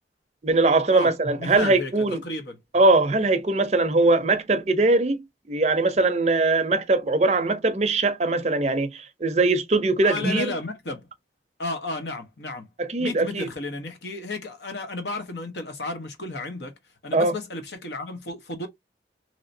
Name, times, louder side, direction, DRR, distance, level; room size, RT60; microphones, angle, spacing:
voice 1, 0.4-2.2 2.7-10.5 12.8-13.5 17.1-17.3, right 2 dB, 35° right, 0.5 m, -21 dB
voice 2, 1.4-1.9 2.2-2.6 10.0-11.1 11.6-12.7 13.0-16.7 17.0-18.7, left 2 dB, 75° left, 1.0 m, -33 dB
3.1 x 2.8 x 2.6 m
head